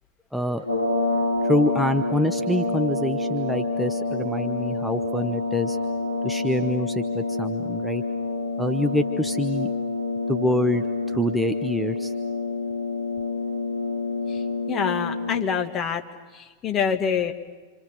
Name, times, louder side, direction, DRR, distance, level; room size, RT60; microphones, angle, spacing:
voice 1, 0.3-0.6 1.4-5.8 6.2-8.0 8.6-9.7 10.3-12.1, left 1 dB, ahead, 8 dB, 0.8 m, -26 dB
sound 1, 0.6-15.7, left 3 dB, 90° left, 3.1 m, -27 dB
voice 2, 14.7-16.0 16.3-17.3, left 7 dB, 30° left, 5 dB, 2.1 m, -26 dB
28.0 x 27.0 x 6.3 m, 1.4 s
figure-of-eight pair, 90°, 0 cm